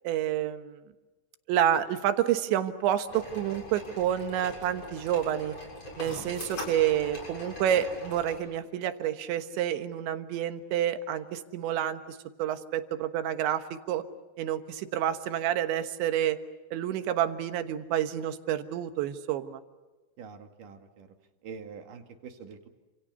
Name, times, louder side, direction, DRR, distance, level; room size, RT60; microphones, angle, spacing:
voice 1, 0.1-0.8 1.5-5.6 6.0-14.1 14.4-16.4 16.7-19.6, right 10 dB, 80° right, 9 dB, 3.6 m, -29 dB
sound 1, 3.1-8.3, left 1 dB, 35° left, 7.6 m, -41 dB
voice 2, 20.2-21.1 21.4-22.7, right 6 dB, 55° right, 5 dB, 3.2 m, -45 dB
29.5 x 27.0 x 6.9 m, 1.2 s
omnidirectional pair, 5.2 m